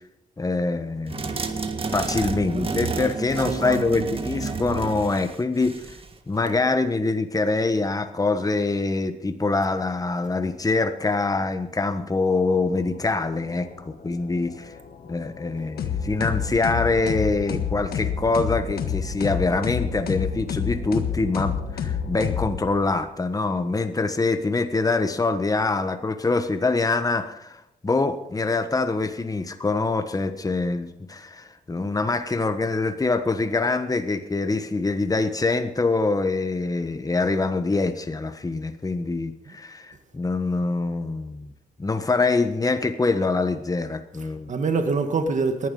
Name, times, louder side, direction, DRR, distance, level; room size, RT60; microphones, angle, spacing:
voice 1, 0.4-1.5 1.9-5.8 6.3-14.7 15.1-41.5 41.8-44.5, left 3 dB, 25° left, 8 dB, 1.4 m, -24 dB
sound 1, 1.1-6.1, right 4 dB, 35° right, 1.8 m, -30 dB
voice 2, 3.5-4.1 44.5-45.7, right 4 dB, 55° right, 6 dB, 1.8 m, -25 dB
sound 2, 12.6-22.6, left 5 dB, 65° left, 2.2 m, -46 dB
sound 3, 15.8-22.9, left 7 dB, 85° left, 1.6 m, -28 dB
19.0 x 11.5 x 5.5 m, 0.85 s
cardioid pair, 80°, 16 cm